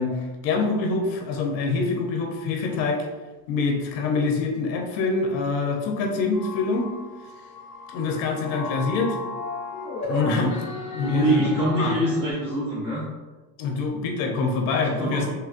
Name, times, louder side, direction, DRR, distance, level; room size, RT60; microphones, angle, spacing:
voice 1, 0.0-3.1 3.5-6.9 7.9-9.2 10.0-11.9 13.6-15.3, left 3 dB, 85° left, 2 dB, 0.7 m, -25 dB
sound 1, 6.3-12.3, left 3 dB, 35° left, 0.7 m, -35 dB
voice 2, 11.0-13.0 14.8-15.3, right 1 dB, 15° right, -10 dB, 0.8 m, -24 dB
3.3 x 2.3 x 2.4 m, 1.2 s
supercardioid pair, 105°, 49 cm